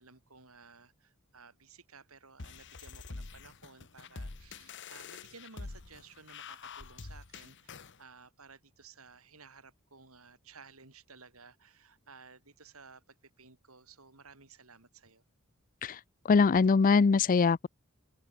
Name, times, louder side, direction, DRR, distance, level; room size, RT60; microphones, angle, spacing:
voice 1, 0.0-15.2, right 4 dB, 75° right, 4.9 m, -56 dB
sound 1, 2.4-8.0, left 4 dB, 55° left, 1.2 m, -46 dB
voice 2, 16.3-17.7, left 5 dB, 40° left, 0.4 m, -23 dB
head